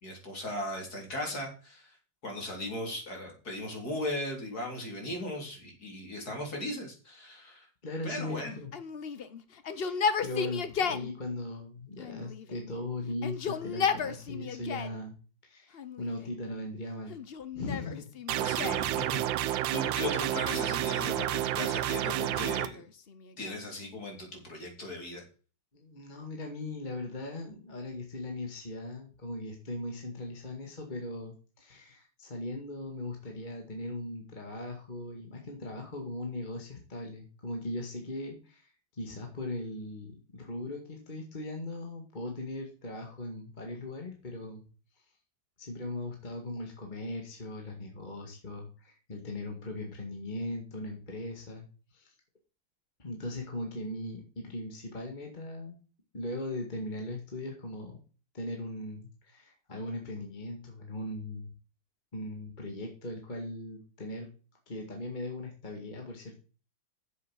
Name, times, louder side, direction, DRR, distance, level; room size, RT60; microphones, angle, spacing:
voice 1, 0.0-2.0 2.2-7.7 8.0-8.6 18.4-22.8 23.4-25.2, left 1 dB, 45° left, 1 dB, 3.9 m, -37 dB
voice 2, 7.8-8.7 9.8-15.2 15.4-17.2 17.5-18.1 25.7-44.6 45.6-52.1 53.0-55.8 56.1-58.0 58.3-61.5 62.1-64.3 64.7-66.3, left 2 dB, 25° left, 2 dB, 2.0 m, -39 dB
Yell, 8.7-11.1 12.0-12.7 13.1-15.0 15.7-16.4 17.1-18.9 20.3-21.1 22.0-23.7, left 6 dB, 80° left, 0.5 m, -35 dB
sound 1, 18.3-22.7, right 12 dB, 70° right, 1.3 m, -30 dB
8.1 x 7.5 x 6.3 m, 0.37 s
omnidirectional pair, 2.3 m